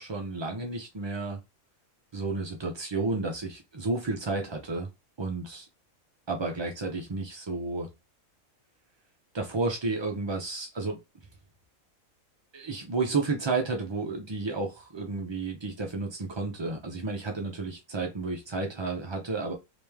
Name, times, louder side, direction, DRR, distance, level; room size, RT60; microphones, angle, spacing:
voice 1, 0.0-1.4 2.1-4.9 5.2-5.7 6.3-7.9 9.3-11.0 12.5-19.5, right 3 dB, 45° right, 0.3 m, -31 dB
3.2 x 3.0 x 3.4 m
omnidirectional pair, 1.4 m